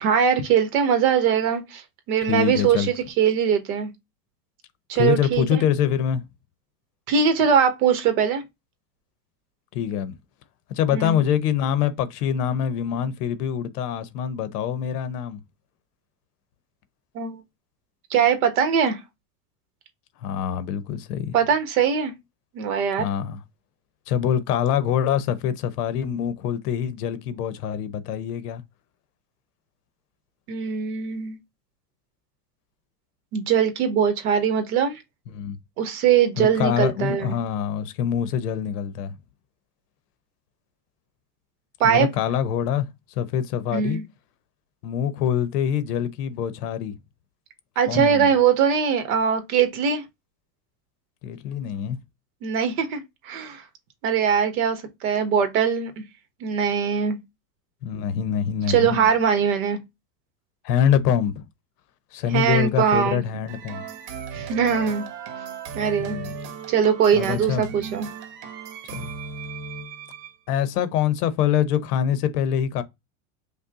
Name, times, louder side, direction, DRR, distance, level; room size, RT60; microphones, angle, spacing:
voice 1, 0.0-1.8 2.1-3.9 4.9-5.6 7.1-8.4 10.9-11.2 17.1-17.4 18.1-19.0 21.3-22.1 22.5-23.1 30.5-31.4 33.3-35.0 35.8-37.3 41.8-42.1 43.7-44.0 47.8-50.0 52.4-53.6 54.0-56.0 56.4-57.2 58.7-59.8 62.3-63.2 64.3-65.0 65.7-66.2 66.7-68.1, right 7 dB, 60° right, 1.3 m, -21 dB
voice 2, 2.3-2.9 5.0-6.2 9.7-10.2 10.7-15.4 20.2-21.3 23.0-23.4 24.1-28.6 35.3-35.6 36.4-39.1 41.8-42.9 43.2-44.0 44.8-47.0 47.9-48.3 51.2-52.0 57.8-59.1 60.6-61.5 62.1-63.8 66.0-66.3 67.1-67.7 68.9-69.1 70.5-72.8, left 9 dB, 70° left, 0.8 m, -25 dB
sound 1, 63.5-70.4, right 6 dB, 75° right, 1.2 m, -36 dB
5.5 x 2.2 x 3.6 m
supercardioid pair, 175°, 48 cm